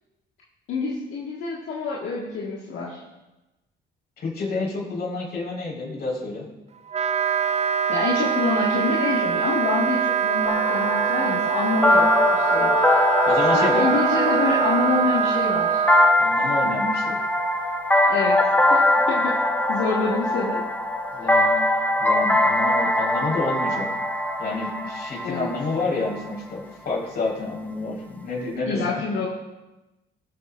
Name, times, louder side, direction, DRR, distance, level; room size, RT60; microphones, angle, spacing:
voice 1, 0.7-3.0 7.9-12.1 12.3-13.1 13.5-15.8 18.0-18.4 18.7-19.3 19.7-20.6 25.2-25.5 28.6-29.3, left 3 dB, 80° left, -6 dB, 1.8 m, -26 dB
voice 2, 4.2-6.5 13.2-13.9 16.2-17.2 21.1-21.6 22.0-23.9 24.4-29.0, left 3 dB, 55° left, -4 dB, 4.5 m, -29 dB
Wind instrument woodwind instrument, 6.9-16.1, right 8 dB, 35° right, 0.5 m, -23 dB
sound 1, 10.5-26.2, left 1 dB, 10° left, 1.0 m, -22 dB
20.5 x 8.1 x 2.5 m, 1.0 s
cardioid pair, 90°, 20 cm